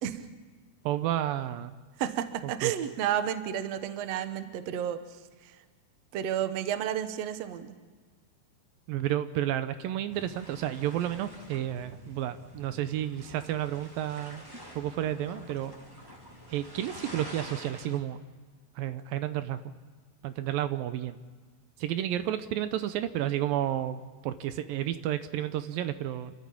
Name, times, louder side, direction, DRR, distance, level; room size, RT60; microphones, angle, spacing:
voice 1, 0.9-1.8 2.6-2.7 8.9-14.4 14.8-15.7 16.5-18.2 18.8-19.6 20.2-21.2 21.8-26.3, right 12 dB, 80° right, 11 dB, 2.5 m, -31 dB
voice 2, 2.0-5.6 6.1-7.7, right 10 dB, 60° right, 9 dB, 1.9 m, -32 dB
sound 1, 10.1-18.0, equal, 5° right, 3.1 m, -48 dB
29.0 x 13.5 x 8.6 m, 1.5 s
omnidirectional pair, 4.2 m